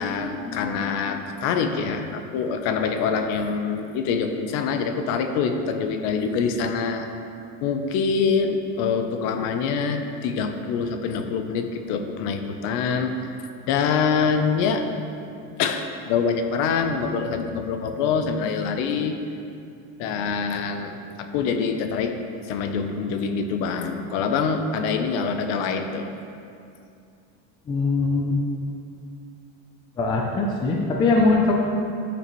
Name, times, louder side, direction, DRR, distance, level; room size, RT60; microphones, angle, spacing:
voice 1, 0.0-7.1 7.6-13.1 13.7-14.9 15.6-19.1 20.0-22.1 22.5-26.1, left 5 dB, 50° left, 6 dB, 0.7 m, -25 dB
voice 2, 27.7-28.4 30.0-31.5, left 3 dB, 15° left, 0 dB, 0.4 m, -21 dB
13.5 x 7.0 x 3.1 m, 2.5 s
cardioid pair, 175°, 35 cm